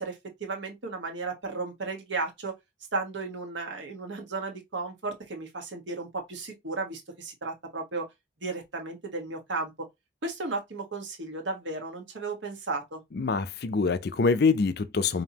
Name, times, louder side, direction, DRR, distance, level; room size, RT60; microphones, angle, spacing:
voice 1, 0.0-2.5 2.9-8.0 8.4-9.7 10.2-13.0, right 3 dB, 70° right, 1.3 m, -34 dB
voice 2, 13.1-15.2, left 4 dB, 55° left, 0.5 m, -25 dB
5.2 x 2.8 x 2.8 m
head